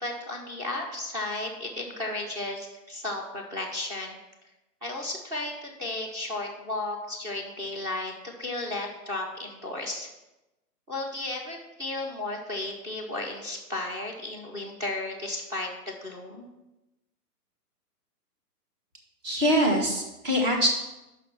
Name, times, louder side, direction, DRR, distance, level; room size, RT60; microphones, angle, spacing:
voice 1, 0.0-4.2 4.8-10.1 10.9-16.5, left 2 dB, 5° right, -3 dB, 0.7 m, -34 dB
voice 2, 19.2-20.7, equal, 25° right, 0 dB, 1.7 m, -23 dB
6.2 x 5.5 x 6.2 m, 0.98 s
hypercardioid pair, 145°, 48 cm